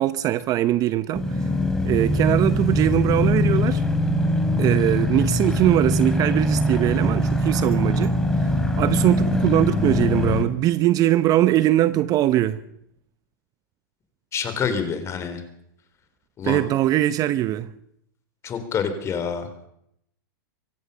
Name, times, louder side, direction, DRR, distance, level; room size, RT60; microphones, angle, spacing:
voice 1, 0.0-1.5 1.8-3.8 4.6-12.6 16.4-17.7, right 14 dB, 30° right, 14 dB, 0.8 m, -21 dB
sound 1, 1.1-10.4, left 1 dB, 5° left, 3.1 m, -22 dB
voice 2, 14.3-15.4 16.4-16.7 18.4-19.5, left 6 dB, 25° left, 10 dB, 3.8 m, -27 dB
24.0 x 16.0 x 6.8 m, 0.74 s
hypercardioid pair, 130°, 12 cm